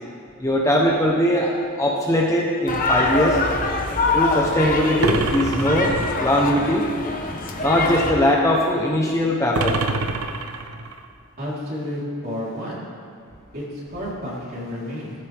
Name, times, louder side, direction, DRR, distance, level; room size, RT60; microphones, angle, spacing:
voice 1, 0.4-3.4 4.1-5.9 6.2-6.9 7.6-9.7, equal, 15° left, -2 dB, 1.0 m, -20 dB
sound 1, 2.7-8.1, left 3 dB, 35° left, 1.2 m, -24 dB
sound 2, 5.0-6.5 9.5-11.1, right 3 dB, 75° right, 0.8 m, -26 dB
voice 2, 11.4-12.7 13.5-15.1, left 1 dB, 40° right, -7 dB, 4.0 m, -31 dB
16.0 x 14.5 x 3.6 m, 2.3 s
head